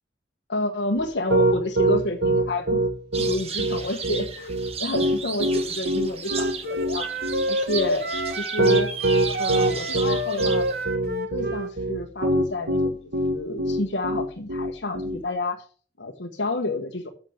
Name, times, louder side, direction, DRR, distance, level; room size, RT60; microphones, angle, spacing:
voice 1, 0.5-2.8 3.2-7.1 7.5-8.1 8.4-8.9 9.2-10.7 11.0-13.0 13.3-15.6 16.0-17.1, left 1 dB, 80° left, -1 dB, 1.4 m, -29 dB
Piano, 1.0-15.2, right 1 dB, 75° right, 1.6 m, -23 dB
sound 1, 3.1-10.8, right 6 dB, 35° right, 1.2 m, -34 dB
Wind instrument woodwind instrument, 6.2-11.7, right 1 dB, 55° right, 1.2 m, -29 dB
7.9 x 7.4 x 6.5 m, 0.42 s
head